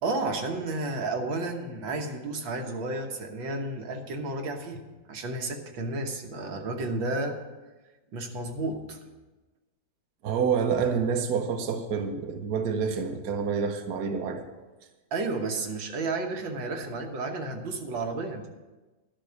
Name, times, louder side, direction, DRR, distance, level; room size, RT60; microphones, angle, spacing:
voice 1, 0.0-4.8 5.1-7.4 8.1-9.0 15.1-18.5, right 2 dB, 85° right, 3 dB, 2.0 m, -32 dB
voice 2, 10.2-14.4, right 6 dB, 60° right, 4 dB, 1.4 m, -28 dB
12.0 x 6.1 x 8.0 m, 1.2 s
omnidirectional pair, 2.0 m